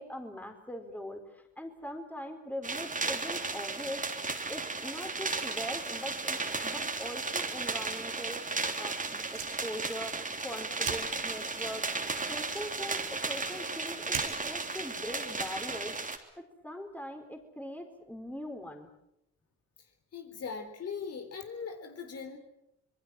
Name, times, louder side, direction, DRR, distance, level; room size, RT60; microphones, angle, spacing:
voice 1, 0.0-4.0 4.5-8.4 8.8-11.9 12.3-18.9, equal, 5° left, 4 dB, 4.5 m, -41 dB
sound 1, 2.6-16.2, right 3 dB, 25° right, 3.2 m, -35 dB
Fire, 9.1-16.0, right 9 dB, 85° right, 3.4 m, -47 dB
voice 2, 20.1-22.4, left 6 dB, 55° left, 6 dB, 3.9 m, -40 dB
26.5 x 21.5 x 7.7 m, 0.83 s
cardioid pair, 90°, 30 cm